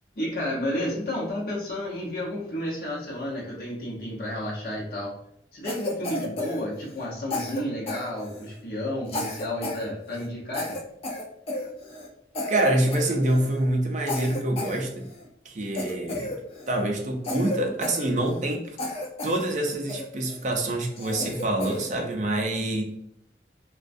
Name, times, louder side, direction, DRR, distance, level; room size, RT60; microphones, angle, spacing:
voice 1, 0.2-5.1 5.5-10.8, left 1 dB, 55° left, -6 dB, 0.7 m, -31 dB
Cough, 5.6-7.1 7.3-8.6 9.1-9.9 10.1-10.3 10.5-12.1 12.3-12.7 12.9-13.6 14.1-15.3 15.7-16.8 17.2-18.5 18.8-19.5 19.9-20.4 21.0-21.9, left 2 dB, 35° left, 0.3 m, -33 dB
voice 2, 12.5-15.1 15.5-16.3 16.7-18.8 19.2-22.8, right 1 dB, 40° right, 3 dB, 0.4 m, -26 dB
2.4 x 2.2 x 2.5 m, 0.74 s
head